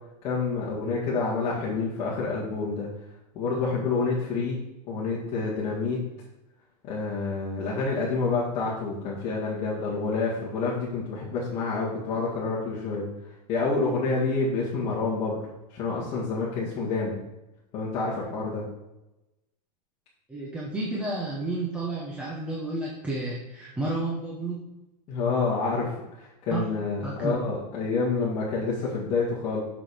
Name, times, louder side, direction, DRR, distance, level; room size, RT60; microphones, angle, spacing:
voice 1, 0.2-2.9 3.3-4.6 4.9-6.0 6.8-13.1 13.5-15.4 15.7-17.2 17.7-18.6 25.1-29.6, left 4 dB, 30° left, -8 dB, 2.0 m, -28 dB
voice 2, 20.3-24.7 26.5-26.6 27.0-27.4, right 2 dB, 5° right, -4 dB, 0.8 m, -31 dB
6.5 x 6.3 x 5.0 m, 0.95 s
supercardioid pair, 170°, 21 cm